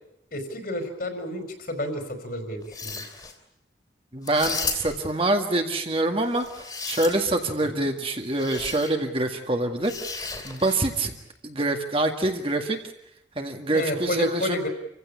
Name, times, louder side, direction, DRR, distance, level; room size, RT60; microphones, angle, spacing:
voice 1, 0.3-3.0 7.6-7.9 13.7-14.7, left 1 dB, 55° left, 6 dB, 4.8 m, -31 dB
sound 1, 2.6-3.3 4.2-5.1 6.3-7.4 8.4-8.9 9.8-10.9, left 4 dB, 20° left, 3.1 m, -34 dB
voice 2, 4.1-10.2 10.4-11.1 11.4-12.8 13.4-14.7, right 2 dB, 30° right, 4 dB, 2.0 m, -25 dB
28.0 x 16.0 x 9.9 m, 0.79 s
head